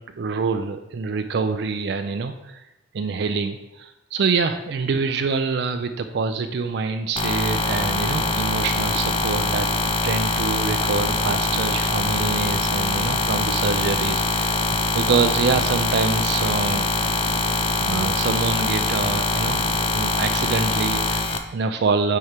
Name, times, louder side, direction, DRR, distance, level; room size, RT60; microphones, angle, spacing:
voice 1, 0.0-2.6 2.9-9.7 10.0-14.6 14.9-17.1 17.8-19.6 19.9-22.2, right 4 dB, 65° right, 7 dB, 0.4 m, -25 dB
sound 1, 7.2-21.4, left 3 dB, 30° left, 0.5 m, -23 dB
4.6 x 4.3 x 5.1 m, 0.94 s
head